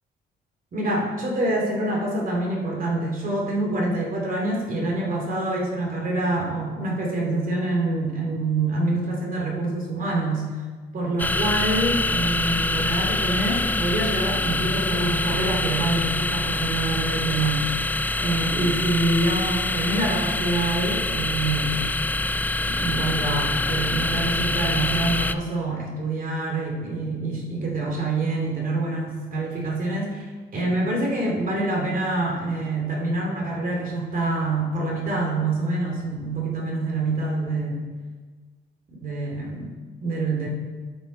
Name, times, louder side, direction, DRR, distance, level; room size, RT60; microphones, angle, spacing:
voice 1, 0.7-10.4 10.9-17.6 18.2-21.9 22.6-37.8 39.0-39.7 40.0-40.5, right 2 dB, 45° right, -1 dB, 2.7 m, -26 dB
sound 1, 11.2-25.3, left 2 dB, 10° left, 0.4 m, -25 dB
12.0 x 6.3 x 4.4 m, 1.4 s
cardioid pair, 90°, 20 cm